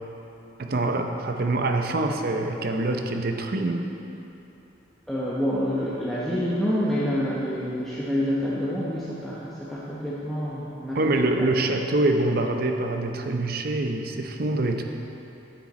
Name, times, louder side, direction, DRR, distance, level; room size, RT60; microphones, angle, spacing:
voice 1, 0.6-3.9 10.9-14.8, right 2 dB, 55° right, 4 dB, 0.6 m, -25 dB
voice 2, 5.1-11.0, equal, ahead, -9 dB, 1.0 m, -27 dB
9.9 x 8.8 x 4.3 m, 3.0 s
head